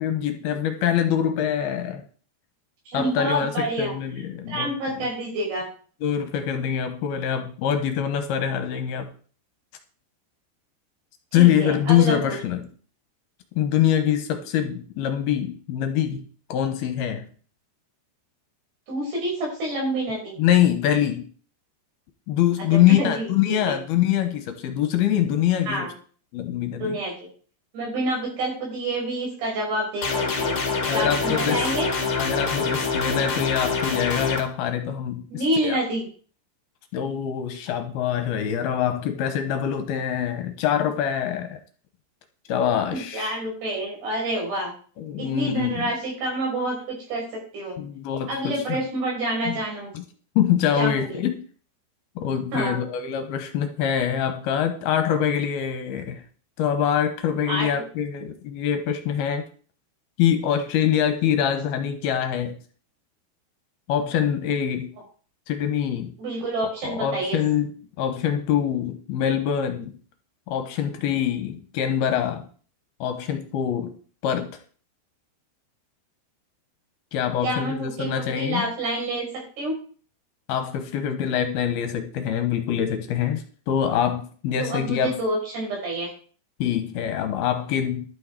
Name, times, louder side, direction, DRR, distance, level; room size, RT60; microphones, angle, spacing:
voice 1, 0.0-2.0 2.9-5.0 6.0-9.1 11.3-12.7 13.6-16.2 16.5-17.2 20.4-21.3 22.3-25.9 26.3-27.0 30.8-31.7 32.1-35.8 36.9-41.6 42.5-43.4 45.0-45.9 47.8-48.8 49.4-49.5 49.9-50.0 50.4-51.3 52.2-56.2 56.6-59.4 60.2-62.6 63.9-64.9 65.5-66.1 66.8-70.0 70.5-72.5 73.0-74.0 74.2-74.6 77.1-78.6 80.5-85.2 86.6-88.2, left 9 dB, 75° left, 8 dB, 2.7 m, -24 dB
voice 2, 2.9-3.9 4.5-5.7 11.3-12.4 18.9-20.3 22.7-23.8 25.7-25.9 26.8-27.1 27.7-30.1 30.4-30.6 30.9-31.9 35.3-36.1 42.9-44.7 45.2-47.2 47.5-47.8 48.3-49.9 50.8-51.2 52.5-52.8 57.5-57.7 66.2-67.4 77.4-79.3 79.6-79.7 84.6-86.1, right 1 dB, 70° right, -1 dB, 7.7 m, -28 dB
sound 1, 30.0-34.4, left 4 dB, 40° left, 2.3 m, -25 dB
12.0 x 8.6 x 4.8 m, 0.42 s
omnidirectional pair, 4.9 m